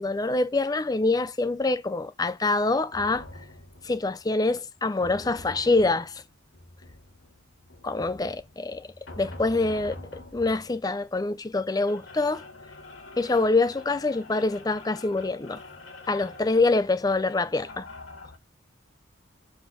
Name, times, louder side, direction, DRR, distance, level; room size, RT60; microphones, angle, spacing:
voice 1, 0.0-3.2 3.8-6.2 7.8-8.9 9.2-12.4 13.2-15.6 16.1-17.9, left 3 dB, 20° left, 0.4 m, -25 dB
sound 1, 2.9-18.4, left 2 dB, 80° left, 1.9 m, -46 dB
7.1 x 4.0 x 5.0 m
head